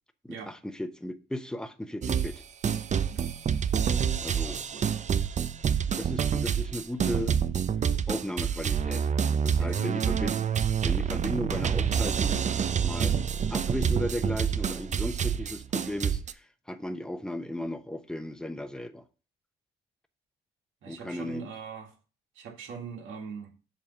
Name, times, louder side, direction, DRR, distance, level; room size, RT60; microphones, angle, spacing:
voice 1, 0.2-2.4 4.2-4.6 5.9-7.4 8.1-9.1 9.4-10.4 10.8-13.2 13.5-19.0 20.9-21.5, left 1 dB, 5° left, 0.8 m, -35 dB
sound 1, 2.0-2.4 2.6-16.3, right 7 dB, 35° right, 0.5 m, -27 dB
voice 2, 4.4-4.9 9.6-10.4 20.8-21.9 22.4-23.5, right 5 dB, 80° right, 2.0 m, -41 dB
7.3 x 3.4 x 5.9 m
cardioid pair, 90°, 20 cm